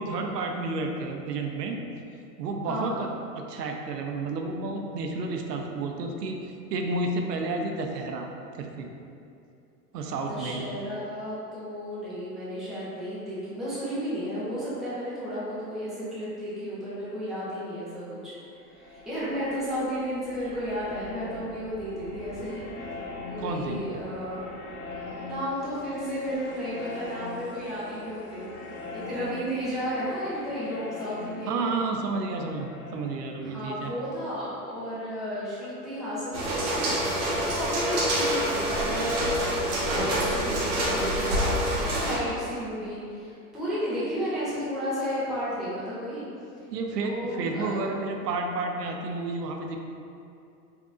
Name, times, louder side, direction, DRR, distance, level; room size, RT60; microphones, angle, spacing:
voice 1, 0.0-1.8 2.4-3.1 3.4-8.3 8.6-8.9 9.9-10.6 23.4-23.8 31.5-33.9 46.7-49.8, right 3 dB, 80° right, 2 dB, 0.5 m, -31 dB
voice 2, 2.7-3.0 10.1-18.3 18.7-22.7 23.3-24.4 25.2-31.6 33.4-46.3 46.9-47.7, equal, ahead, -11 dB, 0.4 m, -33 dB
sound 1, 18.4-35.0, left 3 dB, 40° left, 0.8 m, -42 dB
sound 2, 36.3-42.1, equal, 35° right, 0.8 m, -26 dB
3.7 x 2.6 x 2.4 m, 2.6 s
hypercardioid pair, 110°, 48 cm